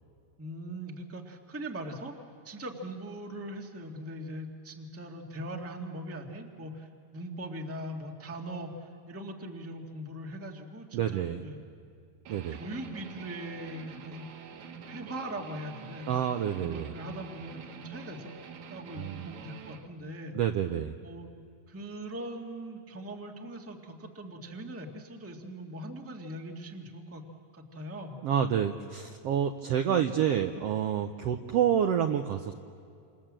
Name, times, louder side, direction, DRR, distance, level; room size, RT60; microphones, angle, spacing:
voice 1, 0.4-2.1 2.4-11.6 12.5-14.2 14.9-16.1 16.6-18.3 18.7-20.4 21.0-21.3 21.7-27.2 27.5-28.2, right 1 dB, 5° right, 2 dB, 1.0 m, -41 dB
voice 2, 10.9-11.4 12.3-12.6 16.1-16.9 19.0-19.3 20.3-20.9 28.2-32.5, right 9 dB, 85° right, 6 dB, 1.4 m, -28 dB
Guitar, 12.3-19.9, right 6 dB, 65° right, 2.6 m, -46 dB
29.0 x 27.0 x 7.6 m, 2.5 s
omnidirectional pair, 3.9 m